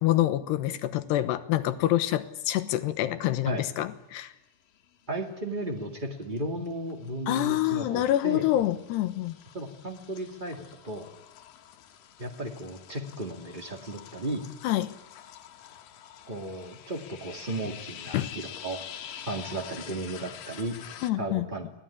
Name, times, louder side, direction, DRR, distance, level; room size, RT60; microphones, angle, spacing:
voice 1, 0.0-4.3 7.3-9.4 14.6-15.0 18.1-18.3 21.0-21.5, left 14 dB, 85° left, 12 dB, 3.2 m, -26 dB
sound 1, 4.8-5.3 5.6-21.1, left 10 dB, 65° left, 2.9 m, -47 dB
voice 2, 5.1-8.4 9.5-11.1 12.2-14.4 16.2-18.8 19.3-20.8 21.2-21.7, right 1 dB, 35° right, 2 dB, 0.7 m, -35 dB
29.5 x 19.5 x 9.8 m, 0.99 s
omnidirectional pair, 4.8 m